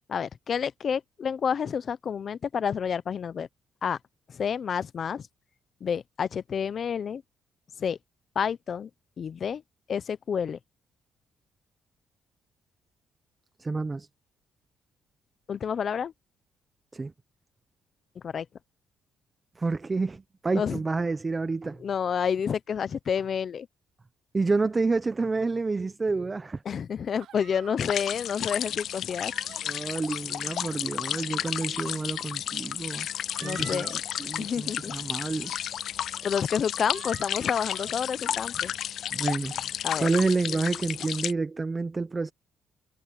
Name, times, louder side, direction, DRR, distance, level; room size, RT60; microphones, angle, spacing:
voice 1, 0.1-3.5 3.8-4.0 4.3-5.3 5.8-7.2 7.8-8.0 8.3-8.9 9.2-9.6 9.9-10.6 15.5-16.1 18.2-18.5 20.5-20.8 21.8-23.7 26.6-29.3 33.4-34.0 34.4-34.9 36.2-38.7 39.8-40.1, left 7 dB, 50° left, 0.8 m, -29 dB
voice 2, 13.6-14.1 16.9-17.1 19.6-21.8 24.3-26.6 29.6-33.1 33.4-33.8 34.2-35.5 39.1-39.6 40.0-42.3, right 3 dB, 25° right, 0.8 m, -29 dB
sound 1, 27.2-27.8 28.4-28.8 29.2-29.6 30.5-30.9 31.9-32.0 33.0-34.0 34.4-34.7 35.4-35.5 36.1-36.4 36.8-37.9, right 11 dB, 75° right, 1.1 m, -47 dB
sound 2, 27.8-41.3, left 10 dB, 65° left, 0.3 m, -32 dB
cardioid pair, 90°, 0 cm